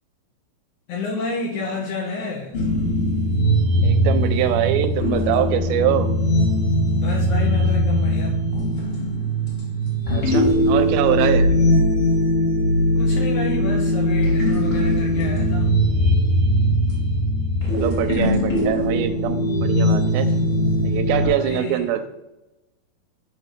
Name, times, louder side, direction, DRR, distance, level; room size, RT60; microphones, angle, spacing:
voice 1, 0.9-2.6 6.9-8.4 13.0-15.7 21.2-22.0, left 3 dB, 75° left, 0 dB, 1.8 m, -30 dB
sound 1, 2.5-21.3, equal, 50° left, 0.7 m, -20 dB
voice 2, 3.8-6.1 10.1-11.5 17.7-20.3 20.8-22.0, right 11 dB, 85° right, 9 dB, 2.4 m, -23 dB
7.4 x 2.6 x 5.8 m, 0.97 s
omnidirectional pair, 4.3 m